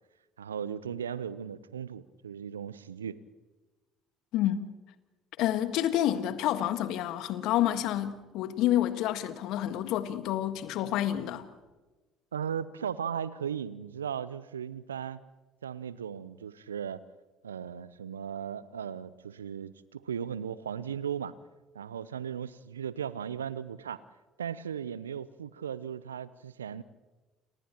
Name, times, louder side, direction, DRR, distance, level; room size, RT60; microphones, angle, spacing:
voice 1, 0.4-3.2 12.3-15.2 15.6-17.0 17.4-21.4 21.7-24.0 24.4-26.8, right 8 dB, 85° right, 0.7 m, -37 dB
voice 2, 4.3-4.7 5.4-11.5, left 12 dB, 60° left, 1.6 m, -29 dB
29.5 x 29.5 x 3.0 m
figure-of-eight pair, 55°, 0 cm